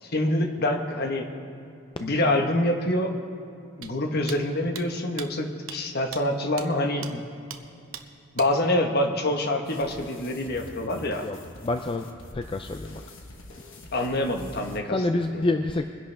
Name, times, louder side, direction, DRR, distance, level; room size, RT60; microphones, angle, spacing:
voice 1, 0.0-1.3 2.0-3.1 3.8-7.2 8.3-11.3 13.9-15.5, left 1 dB, 50° left, 4 dB, 1.2 m, -26 dB
sound 1, 3.8-3.9 4.3-4.4 4.7-4.8 5.2-5.3 5.7-5.8 6.1-6.2 6.6-6.7 7.0-7.1 7.5-7.6 7.9-8.0 8.4-8.5, right 9 dB, 85° right, 0.9 m, -38 dB
sound 2, 9.6-14.8, left 2 dB, 70° left, 1.2 m, -45 dB
voice 2, 11.6-13.0 14.9-15.8, left 2 dB, 25° left, 6 dB, 0.4 m, -27 dB
22.5 x 11.0 x 3.4 m, 2.6 s
head